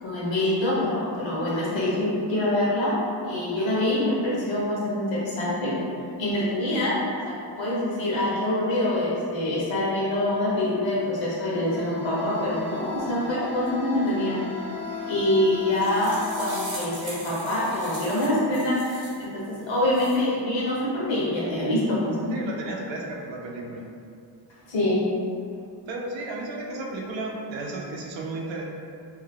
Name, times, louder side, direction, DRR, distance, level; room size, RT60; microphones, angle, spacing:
voice 1, 0.0-5.7 6.2-14.4 14.9-22.3 24.7-25.0, left 1 dB, 85° left, -6 dB, 1.0 m, -25 dB
sound 1, 11.0-19.6, left 4 dB, 45° left, 0.4 m, -38 dB
sound 2, 15.5-19.2 19.7-20.2, right 2 dB, 45° right, 0.8 m, -40 dB
voice 2, 22.3-23.8 25.9-28.7, right 2 dB, 80° right, -1 dB, 0.6 m, -33 dB
2.7 x 2.3 x 3.3 m, 2.5 s
wide cardioid pair, 160°, 45 cm